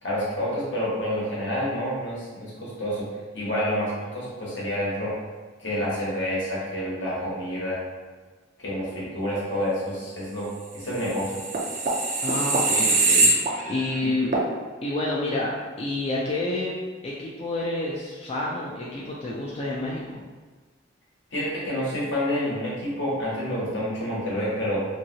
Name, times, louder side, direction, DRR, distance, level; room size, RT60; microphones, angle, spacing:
voice 1, 0.0-3.1 3.3-5.1 5.6-7.8 8.6-10.5 10.7-11.4 14.0-14.1 21.3-24.9, equal, 70° left, -6 dB, 1.1 m, -28 dB
sound 1, 11.0-13.9 14.3-14.5, right 2 dB, 40° right, 0.4 m, -23 dB
voice 2, 12.2-14.4 14.8-15.5 15.8-16.8 17.0-20.2, left 2 dB, 30° left, -5 dB, 0.3 m, -29 dB
2.8 x 2.7 x 2.7 m, 1.4 s
head